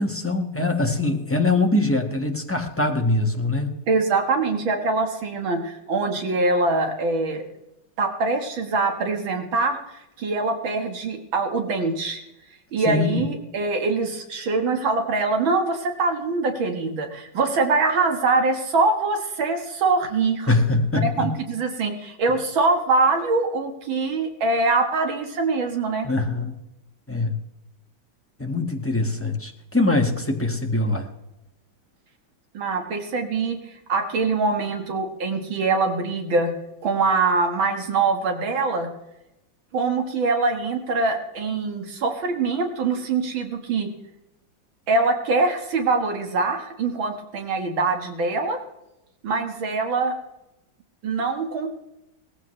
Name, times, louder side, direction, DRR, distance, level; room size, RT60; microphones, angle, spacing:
voice 1, 0.0-3.8 12.9-13.2 20.5-21.3 26.0-26.6 27.1-27.4 28.4-31.1, left 2 dB, 10° left, 2 dB, 1.2 m, -23 dB
voice 2, 3.9-7.4 8.0-9.8 10.2-12.2 12.7-20.5 21.2-26.1 32.5-33.6 33.9-36.5 36.8-38.9 39.7-43.9 44.9-48.6 49.2-50.1 51.0-51.7, right 3 dB, 85° right, 4 dB, 2.4 m, -23 dB
19.0 x 15.0 x 3.2 m, 0.90 s
omnidirectional pair, 2.1 m